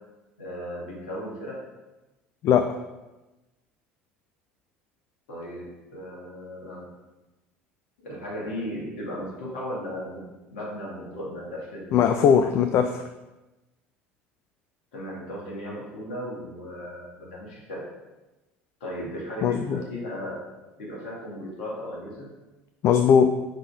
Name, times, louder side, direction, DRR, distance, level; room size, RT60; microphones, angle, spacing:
voice 1, 0.4-1.6 5.3-6.9 8.0-11.9 14.9-17.9 18.8-20.5 20.8-22.3, equal, 70° left, -4 dB, 2.1 m, -36 dB
voice 2, 11.9-13.0 19.4-19.8 22.8-23.3, left 7 dB, 45° left, 7 dB, 0.4 m, -19 dB
5.6 x 3.6 x 4.9 m, 1.1 s
figure-of-eight pair, 65°, 6 cm